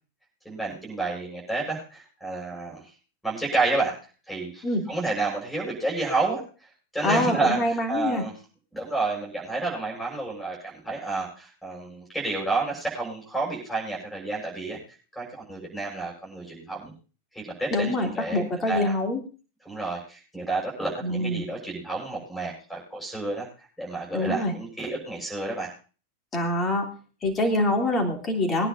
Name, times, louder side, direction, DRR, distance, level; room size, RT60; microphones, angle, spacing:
voice 1, 0.4-2.8 3.2-3.9 4.3-6.4 6.9-8.3 8.7-14.8 15.2-16.9 17.3-18.9 19.7-23.5 23.8-25.7, right 3 dB, 5° left, -1 dB, 7.2 m, -30 dB
voice 2, 7.0-8.2 17.7-19.2 21.0-21.4 24.1-24.5 26.3-26.9 27.2-28.7, left 1 dB, 20° left, 3 dB, 3.2 m, -25 dB
23.0 x 10.0 x 2.7 m, 0.37 s
figure-of-eight pair, 90°, 0 cm